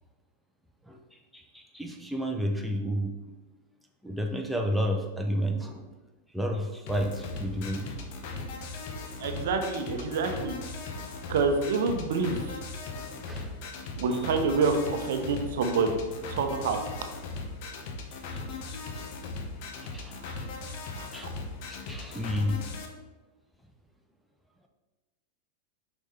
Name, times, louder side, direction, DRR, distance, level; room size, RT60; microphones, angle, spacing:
voice 1, 1.3-3.1 4.0-5.8 6.3-8.2 13.1-13.5 18.3-19.0 19.8-20.2 21.1-21.3 21.7-22.6, equal, ahead, 1 dB, 0.7 m, -31 dB
sound 1, 6.9-22.9, left 3 dB, 50° left, 0.9 m, -38 dB
voice 2, 9.2-10.6 11.3-12.6 13.9-16.0 16.3-16.8 20.2-20.4 20.7-21.1, right 4 dB, 55° right, 5 dB, 0.7 m, -27 dB
6.4 x 5.4 x 3.3 m, 1.2 s
figure-of-eight pair, 90°, 0 cm